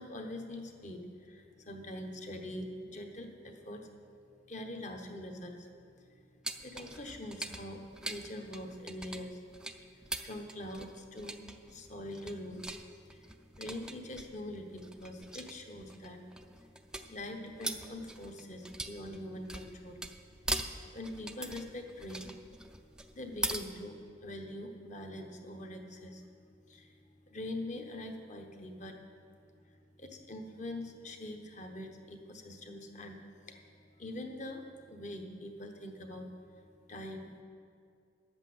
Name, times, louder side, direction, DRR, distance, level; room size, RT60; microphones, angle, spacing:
voice 1, 0.0-3.9 4.5-5.7 6.0-9.4 9.7-11.4 11.7-12.8 13.0-16.2 17.1-20.0 20.6-20.7 20.9-22.3 23.1-26.2 26.7-27.0 27.3-29.0 30.0-36.3 36.9-37.4, left 1 dB, 35° left, 4 dB, 1.0 m, -44 dB
sound 1, 6.4-23.6, right 2 dB, 5° right, 0.4 m, -42 dB
11.0 x 8.2 x 7.7 m, 2.4 s
head